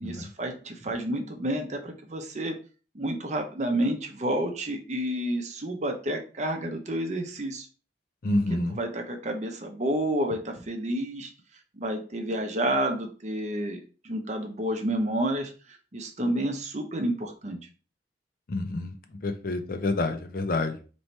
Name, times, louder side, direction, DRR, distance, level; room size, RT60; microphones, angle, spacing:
voice 1, 0.0-2.5 2.9-7.7 8.5-11.3 11.8-15.5 15.9-17.6, right 1 dB, 40° right, 4 dB, 0.7 m, -30 dB
voice 2, 8.2-8.8 18.5-18.9 19.2-20.8, left 2 dB, 50° left, 8 dB, 0.5 m, -28 dB
3.1 x 2.8 x 4.4 m, 0.36 s
head